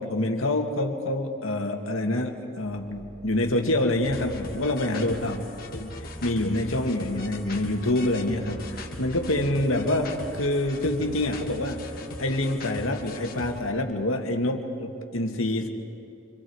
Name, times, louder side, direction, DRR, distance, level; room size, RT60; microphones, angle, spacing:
voice 1, 0.0-5.4 5.7-5.9 6.2-11.9 12.2-15.7, left 1 dB, 75° left, 3 dB, 2.1 m, -26 dB
sound 1, 2.6-11.5, right 1 dB, 80° right, 7.3 m, -50 dB
sound 2, 4.0-13.6, left 1 dB, 45° left, 2.1 m, -39 dB
28.0 x 26.0 x 4.8 m, 2.5 s
head